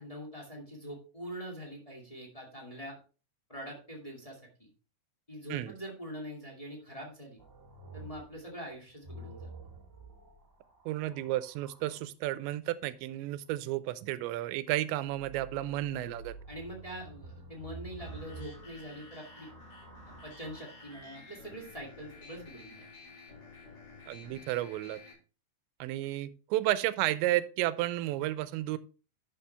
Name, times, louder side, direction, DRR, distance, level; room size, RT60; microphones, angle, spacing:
voice 1, 0.0-3.0 3.5-4.7 5.3-7.4 7.9-9.5 15.5-15.7 16.5-19.5 20.1-22.8, equal, 15° left, -1 dB, 1.1 m, -44 dB
sound 1, 7.4-12.0 15.0-21.1 22.1-22.7, right 2 dB, 40° right, 1.1 m, -50 dB
voice 2, 10.9-16.4 24.1-25.0 25.8-28.8, right 15 dB, 90° right, 15 dB, 2.9 m, -32 dB
sound 2, 18.0-25.1, left 3 dB, 50° left, 6.2 m, -52 dB
11.5 x 6.7 x 3.4 m, 0.35 s
omnidirectional pair, 5.1 m